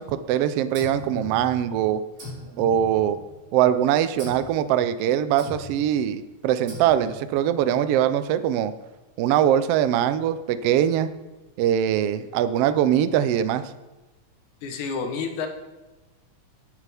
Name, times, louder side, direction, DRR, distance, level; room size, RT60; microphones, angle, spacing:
voice 1, 0.0-2.0 2.6-3.2 3.5-8.7 9.2-11.1 11.6-13.6, right 10 dB, 80° right, 12 dB, 1.4 m, -22 dB
sound 1, 0.7-1.8 2.2-3.5 4.2-4.6 5.4-5.9 6.7-7.3, left 1 dB, 55° right, 4.7 m, -39 dB
voice 2, 14.6-15.5, left 5 dB, 85° left, 5 dB, 2.6 m, -29 dB
17.5 x 8.3 x 3.5 m, 1.1 s
omnidirectional pair, 3.4 m